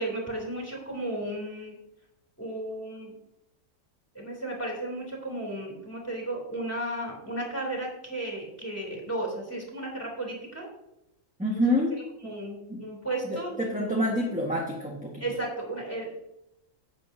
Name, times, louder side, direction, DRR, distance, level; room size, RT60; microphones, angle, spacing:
voice 1, 0.0-1.8 2.4-3.1 4.1-10.7 11.5-11.6 12.2-13.6 13.9-14.0 15.2-16.1, right 1 dB, 10° left, -1 dB, 2.9 m, -34 dB
voice 2, 11.4-11.9 12.7-12.8 13.2-15.1, equal, 5° right, -3 dB, 1.2 m, -27 dB
11.0 x 8.3 x 2.7 m, 0.84 s
omnidirectional pair, 1.6 m